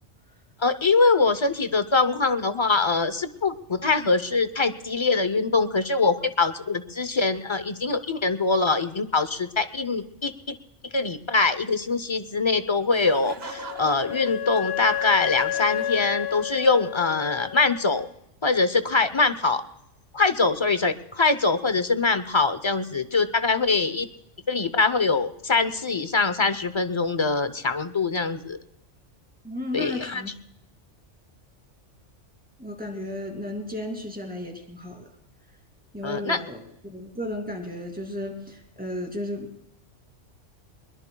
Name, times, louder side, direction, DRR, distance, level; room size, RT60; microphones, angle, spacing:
voice 1, 0.6-10.6 10.9-18.1 18.4-19.6 20.1-24.1 24.5-28.6 29.7-30.2 36.0-36.4, left 3 dB, 30° left, 11 dB, 0.6 m, -23 dB
Laughter, 12.9-16.8, right 5 dB, 55° right, 1.2 m, -44 dB
Wind instrument woodwind instrument, 13.4-18.0, left 13 dB, 60° left, 0.9 m, -31 dB
voice 2, 29.4-30.3 32.6-35.1 35.9-39.6, left 1 dB, 5° right, 2 dB, 2.6 m, -34 dB
23.0 x 21.0 x 2.3 m, 0.83 s
omnidirectional pair, 1.3 m